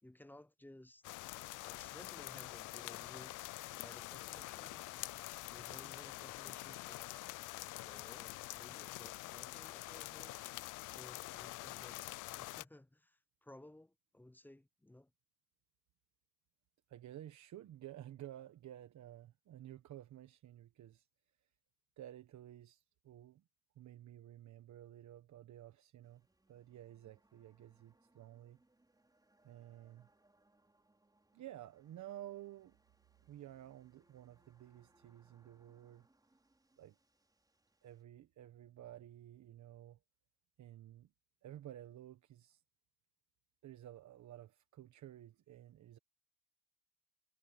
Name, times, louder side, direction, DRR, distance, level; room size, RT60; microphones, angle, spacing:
voice 1, 0.0-1.2 1.6-3.5 3.7-7.0 7.8-10.4 10.9-15.1, left 1 dB, 5° left, 0.6 m, -58 dB
sound 1, 1.0-12.6, left 19 dB, 85° left, 0.5 m, -46 dB
voice 2, 16.9-21.1 21.4-21.5 22.0-23.4 23.7-28.6 29.4-30.1 31.3-32.8 33.3-36.1 36.8-37.0 37.8-40.0 40.6-41.1 41.4-42.6 43.6-46.0, right 12 dB, 70° right, 1.2 m, -53 dB
sound 2, 26.0-38.0, right 2 dB, 15° right, 4.6 m, -74 dB
cardioid pair, 90°, 30 cm